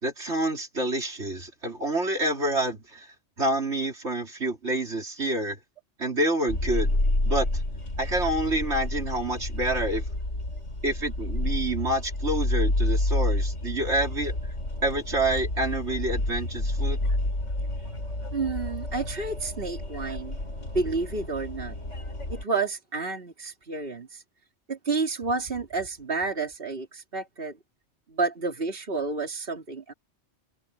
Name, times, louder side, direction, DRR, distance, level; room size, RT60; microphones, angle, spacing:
voice 1, 0.0-3.1 3.4-5.6 6.0-7.5 8.0-10.0 10.8-14.4 14.8-17.0, right 1 dB, 65° right, 3.8 m, -28 dB
sound 1, 6.5-22.4, left 1 dB, 80° left, 6.7 m, -29 dB
voice 2, 18.3-20.4 20.7-21.7 22.3-24.2 24.7-27.6 28.1-29.9, right 3 dB, 50° right, 3.2 m, -30 dB
omnidirectional pair, 1.2 m